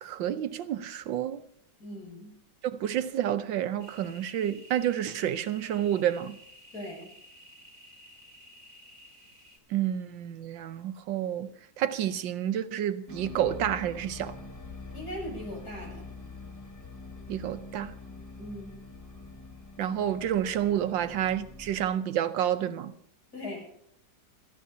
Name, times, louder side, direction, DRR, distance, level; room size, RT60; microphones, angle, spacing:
voice 1, 0.0-1.4 2.7-6.4 9.7-11.5 11.8-14.3 17.3-17.9 19.8-22.9, right 10 dB, 85° right, 1.5 m, -29 dB
voice 2, 1.8-2.3 6.7-7.1 14.9-16.1 18.4-18.7 23.3-23.6, left 1 dB, 55° left, 7.8 m, -39 dB
sound 1, 3.8-9.6, left 1 dB, 15° right, 3.2 m, -53 dB
sound 2, 13.1-21.9, left 3 dB, 10° left, 1.4 m, -45 dB
27.0 x 14.0 x 2.8 m
omnidirectional pair, 2.0 m